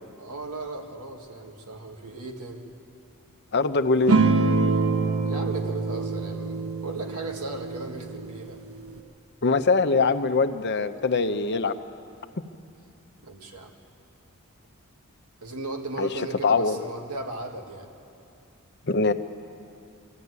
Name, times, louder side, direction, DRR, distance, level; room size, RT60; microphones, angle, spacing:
voice 1, 0.2-2.6 5.2-8.6 13.2-13.7 15.4-17.9, right 2 dB, 90° right, 1 dB, 2.2 m, -36 dB
voice 2, 3.5-4.2 9.4-11.8 16.0-16.1 16.4-16.8 18.8-19.1, left 4 dB, 50° left, 9 dB, 0.8 m, -22 dB
sound 1, 4.1-9.0, right 3 dB, 65° right, 1.3 m, -25 dB
23.0 x 14.0 x 9.6 m, 2.6 s
head